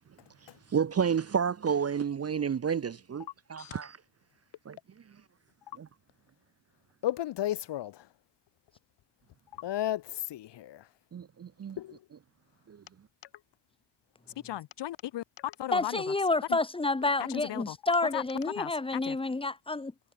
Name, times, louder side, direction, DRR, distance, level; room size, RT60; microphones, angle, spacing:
voice 1, 0.7-3.9 4.7-4.8 5.8-5.9 11.1-11.8 12.7-12.8, right 7 dB, 30° right, 0.6 m, -30 dB
voice 2, 7.0-8.1 9.5-10.9 11.8-12.1 14.4-16.0 16.5-16.6 17.2-17.8 18.1-18.2 18.6-19.2, left 13 dB, 60° left, 0.6 m, -35 dB
voice 3, 15.7-19.9, left 3 dB, 10° left, 0.9 m, -29 dB
wide cardioid pair, 125°, 47 cm